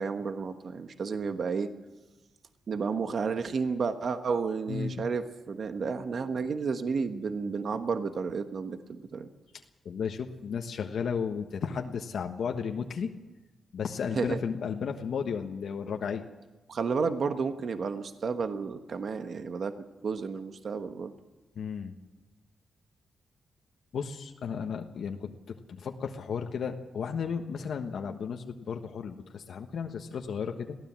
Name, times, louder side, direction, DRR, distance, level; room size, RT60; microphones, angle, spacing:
voice 1, 0.0-1.7 2.7-9.3 14.1-14.4 16.7-19.7 20.0-21.1, right 5 dB, 55° right, 8 dB, 1.2 m, -31 dB
voice 2, 4.7-5.0 9.8-13.1 13.7-16.2 21.6-21.9 23.9-25.3 25.8-30.8, left 6 dB, 70° left, 4 dB, 1.3 m, -34 dB
22.0 x 16.0 x 7.5 m, 1.1 s
wide cardioid pair, 130°, 0 cm